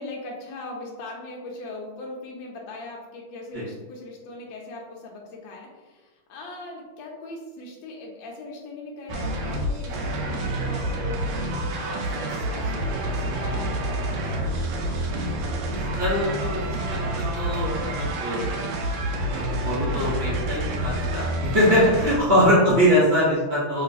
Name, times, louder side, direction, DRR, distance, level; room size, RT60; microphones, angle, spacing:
voice 1, 0.0-11.3 11.7-14.3 22.0-22.7, left 2 dB, 75° left, -2 dB, 1.2 m, -40 dB
sound 1, 9.1-22.2, right 1 dB, 80° right, 0.9 m, -28 dB
voice 2, 15.6-16.6 16.9-18.8 19.3-23.8, equal, 60° right, -9 dB, 0.6 m, -23 dB
3.0 x 2.8 x 2.5 m, 1.2 s
omnidirectional pair, 2.3 m